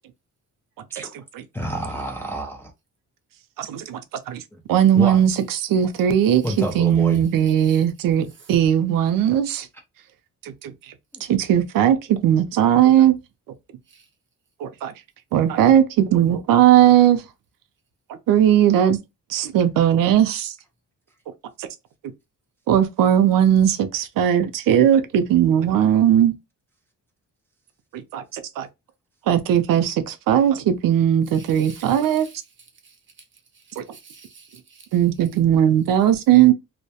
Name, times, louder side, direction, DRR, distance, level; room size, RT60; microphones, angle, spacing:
voice 1, 1.5-2.7 4.5-4.6 4.9-5.2 6.4-7.2, right 1 dB, 5° left, 0.3 m, -28 dB
voice 2, 3.6-4.0 4.3-4.4 4.7-9.7 10.4-10.7 11.3-13.1 14.6-14.9 15.3-17.2 18.3-19.0 19.3-20.5 21.6-21.7 22.7-26.3 28.1-28.7 29.3-32.3 33.8-33.9 34.9-36.5, right 10 dB, 75° right, 0.5 m, -18 dB
voice 3, 7.4-7.8 8.4-8.5 13.9-14.0 31.3-32.4 32.8-33.0 33.5-34.9, right 5 dB, 35° right, 0.7 m, -48 dB
2.2 x 2.1 x 2.7 m
cardioid pair, 155°, 33 cm